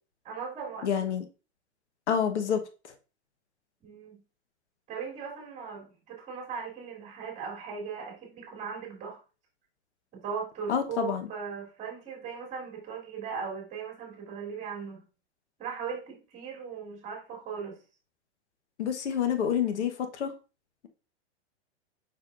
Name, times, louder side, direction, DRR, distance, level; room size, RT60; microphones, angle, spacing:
voice 1, 0.2-0.9 3.8-4.2 4.9-9.2 10.1-15.0 15.6-17.8, right 6 dB, 20° right, 2.9 m, -38 dB
voice 2, 0.8-1.2 2.1-2.6 10.7-11.3 18.8-20.3, left 8 dB, 80° left, 1.1 m, -28 dB
6.8 x 5.8 x 2.5 m
supercardioid pair, 155°, 34 cm